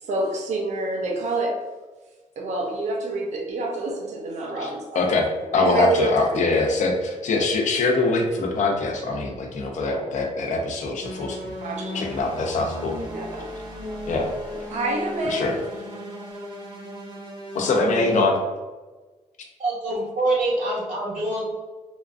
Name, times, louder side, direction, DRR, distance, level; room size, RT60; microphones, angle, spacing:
voice 1, 0.0-1.6 2.4-5.1 5.4-6.5 11.6-12.0 13.0-13.5 14.7-15.6, right 2 dB, 60° right, 1 dB, 0.5 m, -27 dB
voice 2, 4.9-5.3 5.5-11.4 11.9-12.9 14.1-14.3 15.3-15.6 17.5-18.4, left 3 dB, 65° left, 1 dB, 0.5 m, -23 dB
sound 1, 11.0-18.2, left 1 dB, 35° right, 0.8 m, -36 dB
voice 3, 19.6-21.4, right 2 dB, 80° right, -6 dB, 1.4 m, -25 dB
3.0 x 2.3 x 2.5 m, 1.2 s
wide cardioid pair, 150°, 13 cm